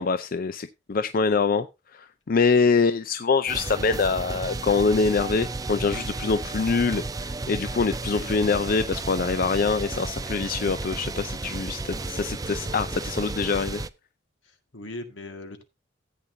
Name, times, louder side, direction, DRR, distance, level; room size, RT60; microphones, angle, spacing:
voice 1, 0.0-1.7 1.9-13.8, left 4 dB, 45° left, 11 dB, 0.5 m, -24 dB
sound 1, 3.5-13.9, right 3 dB, 20° right, 0.4 m, -33 dB
voice 2, 8.1-8.4 14.4-15.6, left 2 dB, 75° left, 6 dB, 1.9 m, -40 dB
14.5 x 8.6 x 2.7 m, 0.24 s
head